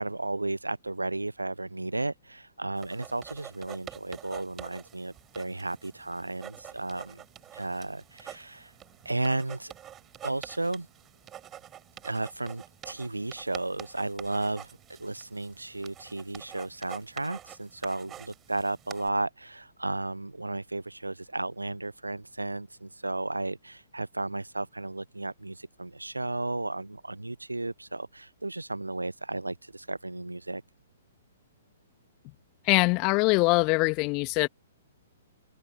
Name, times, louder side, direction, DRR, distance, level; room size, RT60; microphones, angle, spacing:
voice 1, 0.0-7.2 7.5-8.7 9.0-9.7 10.2-10.9 12.0-30.6, right 2 dB, 80° right, 0.7 m, -34 dB
sound 1, 2.8-19.1, right 11 dB, 20° right, 4.2 m, -47 dB
voice 2, 32.6-34.5, left 29 dB, 30° left, 1.5 m, -23 dB
figure-of-eight pair, 115°, 0 cm